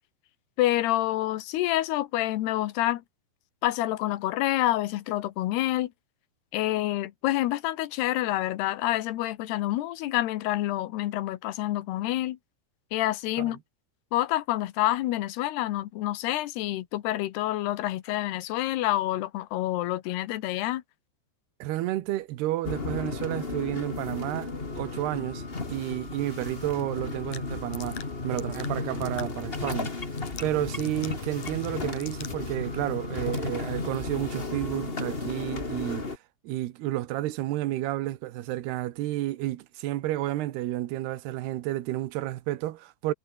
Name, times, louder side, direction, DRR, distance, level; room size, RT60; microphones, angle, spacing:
voice 1, 0.6-3.0 3.6-5.9 6.5-12.4 12.9-13.6 14.1-20.8, left 15 dB, 90° left, 3.2 m, -27 dB
voice 2, 21.6-25.4 25.7-29.9 30.4-36.1 36.4-43.1, right 15 dB, 85° right, 3.2 m, -31 dB
sound 1, 22.6-36.2, left 3 dB, 25° left, 1.4 m, -34 dB
sound 2, 27.3-32.5, left 12 dB, 60° left, 2.4 m, -46 dB
omnidirectional pair, 4.6 m